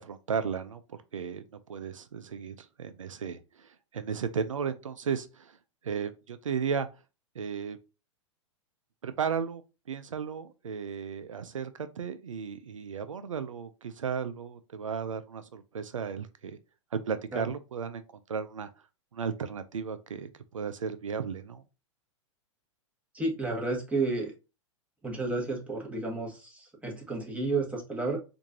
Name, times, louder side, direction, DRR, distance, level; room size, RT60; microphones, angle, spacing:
voice 1, 0.0-1.4 1.7-5.6 5.8-6.9 7.4-7.8 9.0-9.6 9.9-16.6 16.9-18.0 18.3-18.7 19.1-21.6, right 6 dB, 90° right, 0.4 m, -34 dB
voice 2, 23.1-24.3 25.0-28.2, right 3 dB, 10° right, 1.4 m, -31 dB
4.5 x 2.6 x 2.7 m
hypercardioid pair, 105°, 16 cm